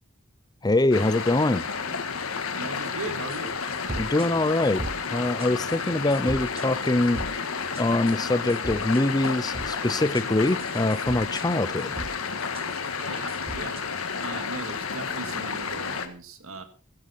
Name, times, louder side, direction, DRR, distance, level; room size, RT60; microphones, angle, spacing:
voice 1, 0.6-1.6 4.0-4.9 5.1-7.2 7.8-11.9, left 2 dB, 20° left, 0.6 m, -24 dB
sound 1, 0.9-16.1, left 5 dB, 85° left, 1.7 m, -31 dB
voice 2, 2.5-3.6 13.0-13.8 14.2-16.6, right 3 dB, 75° right, 2.1 m, -38 dB
sound 2, 3.3-3.5 3.7-4.3 4.6-5.0 5.4-5.8 6.1-6.7 7.0-7.3 7.8-8.2 8.5-9.7 10.0-11.5 11.8-12.1 12.4-13.8, right 2 dB, 25° right, 0.6 m, -37 dB
16.0 x 12.5 x 4.1 m
head